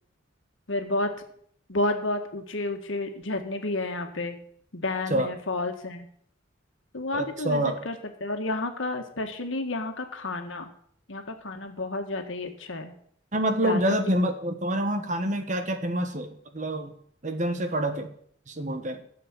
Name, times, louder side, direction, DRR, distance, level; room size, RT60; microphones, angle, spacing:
voice 1, 0.7-1.1 1.7-4.4 4.7-6.1 6.9-10.7 11.1-12.9 13.6-14.1, left 2 dB, 80° left, 5 dB, 1.7 m, -31 dB
voice 2, 7.1-7.8 13.3-16.9 17.2-18.1 18.5-19.0, right 1 dB, 40° right, 8 dB, 1.3 m, -27 dB
12.5 x 7.7 x 7.4 m, 0.62 s
head